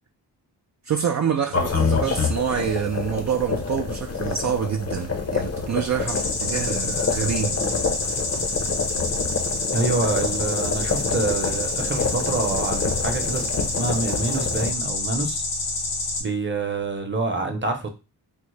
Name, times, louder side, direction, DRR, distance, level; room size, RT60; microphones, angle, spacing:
voice 1, 0.8-7.6, right 8 dB, 45° right, 0.4 m, -26 dB
sound 1, 1.5-14.7, left 5 dB, 35° left, 0.7 m, -27 dB
sound 2, 6.1-16.2, left 2 dB, 75° left, 1.0 m, -28 dB
voice 2, 9.7-13.5 13.8-15.4 16.2-17.9, right 3 dB, 25° right, 0.8 m, -26 dB
3.6 x 2.0 x 3.2 m
cardioid pair, 55°, 42 cm